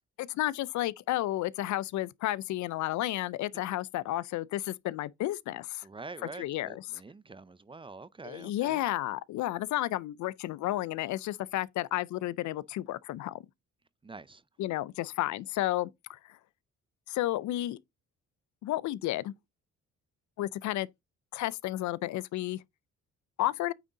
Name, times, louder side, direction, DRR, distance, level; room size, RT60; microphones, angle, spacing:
voice 1, 0.2-5.9 6.4-6.8 8.2-13.4 14.6-16.4 17.1-17.8 18.6-19.3 20.4-20.9 21.3-22.6 23.4-23.7, left 15 dB, 70° left, 0.4 m, -32 dB
voice 2, 5.8-8.8 14.0-14.4, right 3 dB, 15° right, 0.5 m, -46 dB
9.1 x 3.6 x 3.9 m
cardioid pair, 90°, 30 cm